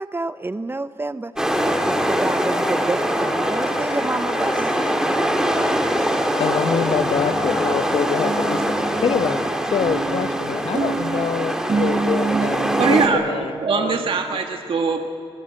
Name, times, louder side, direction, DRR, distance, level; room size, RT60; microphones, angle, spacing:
voice 1, 0.0-1.3 1.6-4.7 5.0-5.9, right 2 dB, 25° right, 13 dB, 0.7 m, -28 dB
sound 1, 1.4-9.4, left 2 dB, 55° left, 5.8 m, -33 dB
sound 2, 1.4-13.1, equal, 5° right, 2.8 m, -23 dB
voice 2, 6.4-8.8 9.0-9.4 9.7-14.0 14.3-14.4, left 7 dB, 90° left, 12 dB, 1.0 m, -25 dB
sound 3, 7.3-14.4, right 4 dB, 45° right, 1.4 m, -28 dB
voice 3, 12.8-15.0, right 5 dB, 70° right, 4 dB, 1.8 m, -22 dB
26.0 x 21.5 x 7.7 m, 2.5 s
wide cardioid pair, 105°, 10 cm